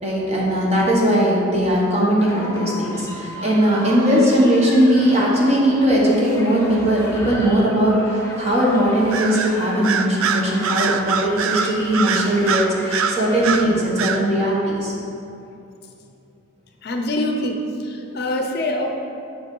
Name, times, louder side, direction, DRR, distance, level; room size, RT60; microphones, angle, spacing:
voice 1, 0.0-14.9, equal, 30° right, -4 dB, 1.4 m, -19 dB
sound 1, 2.2-13.6, left 1 dB, 15° left, 1.1 m, -36 dB
Bird vocalization bird call bird song, 9.1-9.5 9.8-13.7 14.0-14.2, right 6 dB, 85° right, 0.4 m, -23 dB
voice 2, 16.8-18.9, left 1 dB, 50° left, 3 dB, 0.6 m, -24 dB
7.1 x 5.2 x 5.4 m, 2.7 s
head